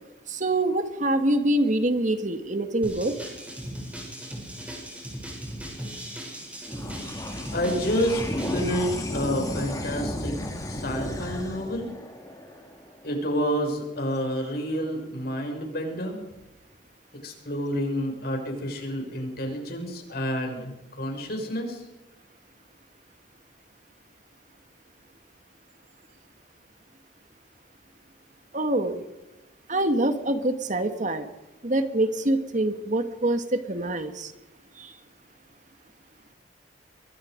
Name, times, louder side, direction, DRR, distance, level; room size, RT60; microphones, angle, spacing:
voice 1, 0.3-3.1 28.5-29.0 29.7-31.3 31.6-34.3 34.8-34.9, right 1 dB, 45° right, 8 dB, 1.7 m, -25 dB
sound 1, 2.8-8.8, equal, 10° right, 7.6 m, -38 dB
sound 2, 6.7-13.4, left 1 dB, 20° left, 3.4 m, -33 dB
voice 2, 7.5-8.2 8.5-10.3 10.7-11.9 13.0-16.2 17.2-21.8, equal, 60° left, 2 dB, 6.4 m, -29 dB
25.0 x 22.0 x 5.2 m, 0.98 s
head